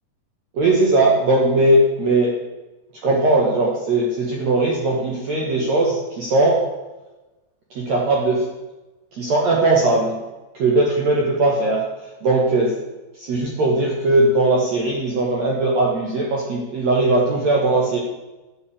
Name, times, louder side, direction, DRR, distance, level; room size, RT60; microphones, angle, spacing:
voice 1, 0.5-2.4 3.0-6.6 7.7-8.5 9.1-10.2 10.5-11.9 12.2-12.8 13.2-18.0, right 2 dB, 55° right, -2 dB, 2.4 m, -19 dB
11.5 x 6.6 x 8.6 m, 1.1 s
omnidirectional pair, 4.4 m